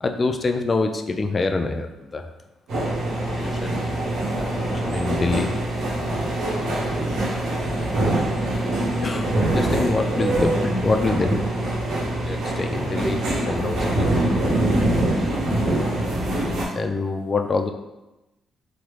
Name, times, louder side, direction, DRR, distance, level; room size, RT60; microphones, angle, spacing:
voice 1, 0.0-2.3 3.3-3.9 4.4-5.5 9.0-11.4 12.1-14.7 16.7-17.7, left 3 dB, 30° left, 5 dB, 0.3 m, -26 dB
sound 1, 2.7-16.7, right 1 dB, 75° right, 0.8 m, -24 dB
3.6 x 2.0 x 3.1 m, 1.0 s
cardioid pair, 90°, 0 cm